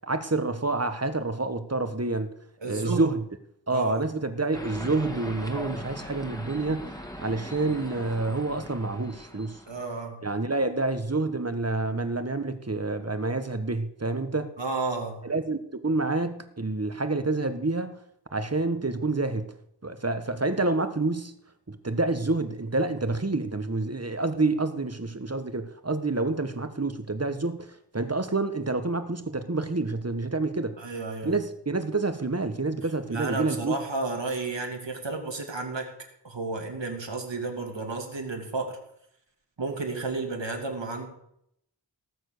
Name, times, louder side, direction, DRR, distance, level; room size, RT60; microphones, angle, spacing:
voice 1, 0.0-2.3 2.6-3.2 3.7-9.6 10.2-14.5 15.2-18.0 18.3-19.5 19.8-21.3 21.7-30.8 31.2-33.8, right 3 dB, 35° right, 1.5 m, -28 dB
voice 2, 2.6-3.1 3.7-4.0 9.7-10.2 14.6-15.2 30.8-31.3 33.1-35.9 36.2-38.8 39.6-41.1, right 3 dB, 80° right, 3.0 m, -32 dB
sound 1, 4.5-9.8, equal, 10° left, 2.3 m, -40 dB
18.5 x 7.4 x 6.8 m
wide cardioid pair, 45°, 43 cm